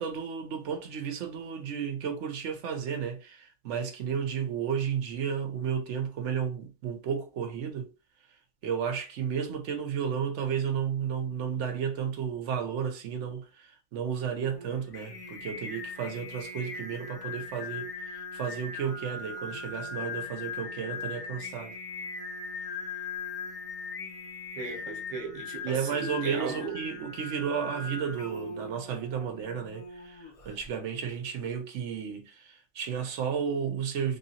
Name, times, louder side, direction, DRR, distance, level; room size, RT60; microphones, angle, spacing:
voice 1, 0.0-7.9 8.6-21.8 25.6-34.2, right 7 dB, 90° right, 1.0 m, -33 dB
Singing, 14.4-30.7, left 4 dB, 40° left, 0.5 m, -40 dB
voice 2, 24.6-26.8, right 4 dB, 50° right, 1.0 m, -36 dB
3.1 x 2.8 x 2.7 m
omnidirectional pair, 1.2 m